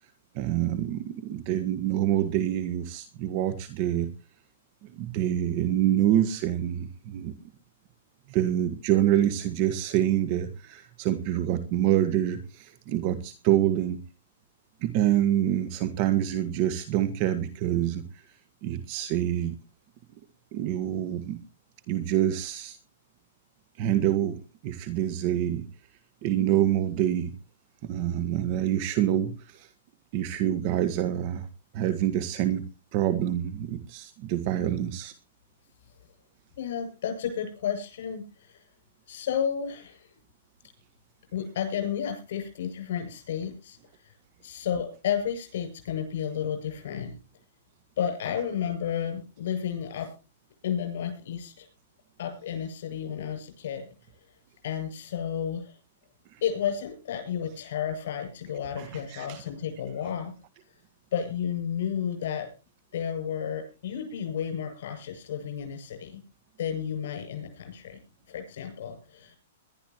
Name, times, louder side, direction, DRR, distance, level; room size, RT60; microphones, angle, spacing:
voice 1, 0.3-4.1 4.8-7.3 8.3-14.0 14.8-18.2 18.6-19.6 20.5-21.4 21.9-22.8 23.8-25.7 26.2-27.3 27.8-29.7 30.1-31.5 31.7-35.1 56.3-56.4 58.8-59.4, right 12 dB, 40° right, 1.6 m, -26 dB
voice 2, 36.6-38.6 39.1-40.1 41.3-44.1 44.4-47.2 48.0-50.1 50.6-51.7 52.2-53.9 54.6-55.7 56.4-60.3 61.1-62.5 62.9-66.2 66.6-68.0 68.3-69.4, left 8 dB, 65° left, 7.7 m, -32 dB
21.5 x 12.0 x 3.1 m
hypercardioid pair, 140°, 0 cm